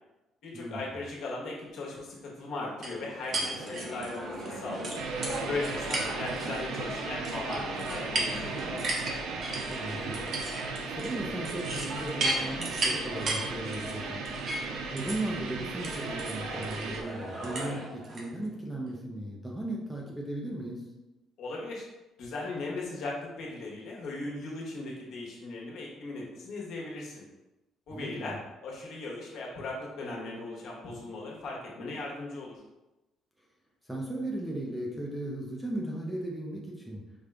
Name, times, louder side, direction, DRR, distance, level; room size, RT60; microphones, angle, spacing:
voice 1, 0.4-4.9 5.5-8.7 21.4-21.9 22.2-27.3 27.9-28.4 28.6-32.6, left 2 dB, 60° left, -4 dB, 1.2 m, -38 dB
sound 1, 2.8-18.3, right 2 dB, 40° right, 0.8 m, -35 dB
sound 2, 4.9-17.0, right 4 dB, 85° right, 0.5 m, -38 dB
voice 2, 9.7-10.2 10.6-14.2 14.7-20.8 27.9-28.4 33.9-37.0, right 1 dB, 5° right, -3 dB, 0.6 m, -36 dB
5.1 x 2.4 x 3.3 m, 1.0 s
cardioid pair, 165°, 0 cm